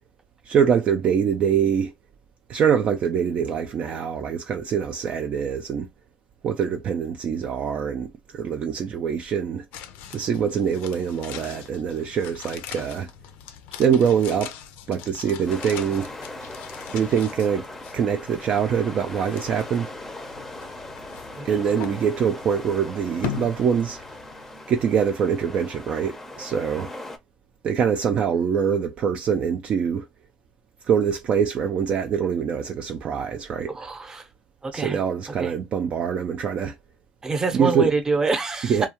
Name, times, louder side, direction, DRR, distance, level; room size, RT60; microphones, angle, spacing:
voice 1, 0.5-1.9 2.5-5.9 6.4-9.6 10.1-13.1 13.8-14.5 14.9-16.1 16.9-17.7 17.9-19.9 21.4-24.0 24.7-26.9 27.6-30.1 30.8-33.7 34.7-36.8 37.5-37.9 38.7-38.9, right 7 dB, 45° right, 0.4 m, -24 dB
sound 1, 9.7-24.9 25.2-25.3, left 10 dB, 75° left, 0.4 m, -40 dB
sound 2, 15.5-27.2, left 2 dB, 10° left, 0.6 m, -39 dB
voice 2, 33.7-34.3 34.6-35.0 35.4-35.5 37.2-38.8, right 3 dB, 20° right, 0.7 m, -26 dB
2.3 x 2.2 x 2.9 m
supercardioid pair, 100°, 3 cm